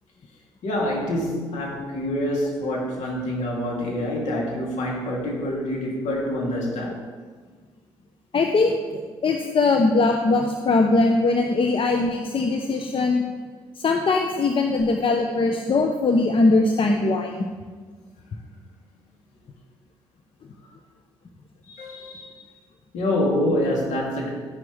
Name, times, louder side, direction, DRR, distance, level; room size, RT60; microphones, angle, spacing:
voice 1, 0.6-7.0 18.3-18.4 21.7-22.5 22.9-24.3, left 1 dB, 65° left, -2 dB, 3.2 m, -26 dB
voice 2, 8.3-13.2 13.8-17.3, left 3 dB, 40° left, 4 dB, 1.0 m, -21 dB
12.5 x 10.5 x 3.5 m, 1.5 s
hypercardioid pair, 45°, 13 cm